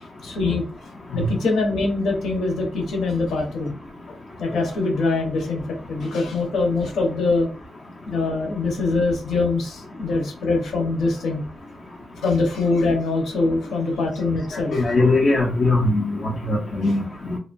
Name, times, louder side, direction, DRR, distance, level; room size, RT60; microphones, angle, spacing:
voice 1, 0.2-3.8 4.4-5.6 5.9-7.5 8.1-11.4 12.2-15.1, left 3 dB, 80° left, 1 dB, 0.9 m, -23 dB
voice 2, 14.7-17.4, left 2 dB, 35° left, -3 dB, 0.4 m, -21 dB
2.9 x 2.2 x 2.5 m, 0.39 s
wide cardioid pair, 180°, 0 cm